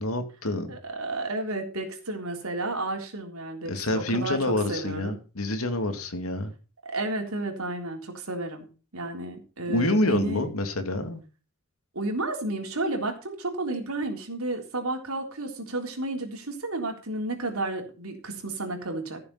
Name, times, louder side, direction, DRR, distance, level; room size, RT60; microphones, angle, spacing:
voice 1, 0.0-0.7 3.7-6.5 9.7-11.2, left 1 dB, 85° left, 8 dB, 2.4 m, -27 dB
voice 2, 0.7-5.2 6.8-8.7 8.9-10.5 11.9-19.2, right 2 dB, 85° right, 3 dB, 3.7 m, -32 dB
15.0 x 7.0 x 5.6 m, 0.35 s
head